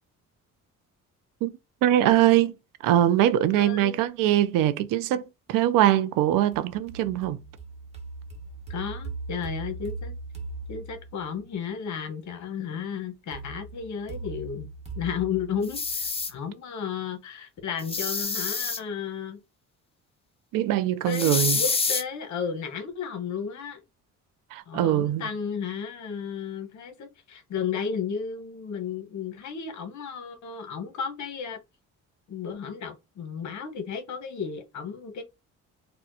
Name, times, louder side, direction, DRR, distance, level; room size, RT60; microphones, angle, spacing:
voice 1, 1.8-2.5 2.8-7.4 20.5-21.6 24.5-25.2, right 12 dB, 85° right, 0.5 m, -22 dB
voice 2, 3.6-3.9 8.7-10.1 10.7-14.7 15.0-19.4 21.0-23.8 24.7-31.6 32.3-35.2, left 7 dB, 65° left, 1.1 m, -33 dB
sound 1, 6.5-11.5 13.3-16.3, right 3 dB, 20° right, 1.1 m, -39 dB
sound 2, 15.6-16.3 17.8-18.8 21.1-22.0, left 4 dB, 20° left, 0.5 m, -27 dB
4.2 x 2.2 x 2.7 m
cardioid pair, 110°, 32 cm